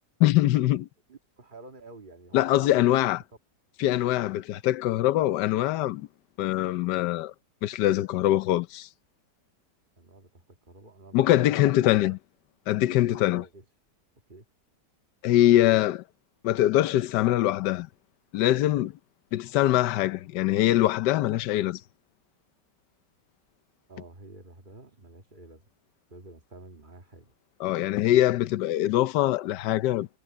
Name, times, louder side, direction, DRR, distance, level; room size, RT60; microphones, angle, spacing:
voice 1, 0.2-0.9 2.3-3.2 3.8-6.1 6.4-7.3 7.6-8.9 11.1-12.2 12.7-13.4 15.2-16.0 16.4-17.9 18.3-18.9 19.3-21.8 27.6-30.1, left 14 dB, 75° left, 1.3 m, -23 dB
voice 2, 1.1-3.0 10.0-12.2 13.1-13.6 14.3-14.5 23.9-25.6 26.1-27.3, right 2 dB, 30° right, 1.8 m, -49 dB
omnidirectional pair, 1.9 m